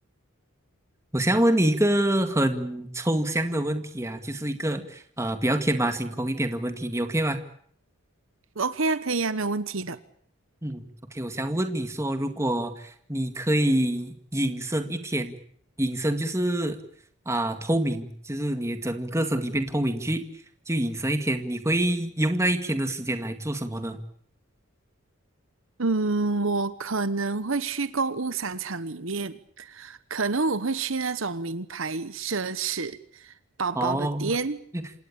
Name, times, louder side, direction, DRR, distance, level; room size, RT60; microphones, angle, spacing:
voice 1, 1.1-7.4 10.6-15.4 15.8-16.8 17.3-20.2 20.7-24.0 33.8-34.3 34.7-34.8, right 1 dB, 15° right, 8 dB, 2.0 m, -26 dB
voice 2, 8.6-10.0 25.8-33.3 33.6-34.6, right 3 dB, 65° right, 14 dB, 1.1 m, -28 dB
27.5 x 17.5 x 8.7 m, 0.64 s
head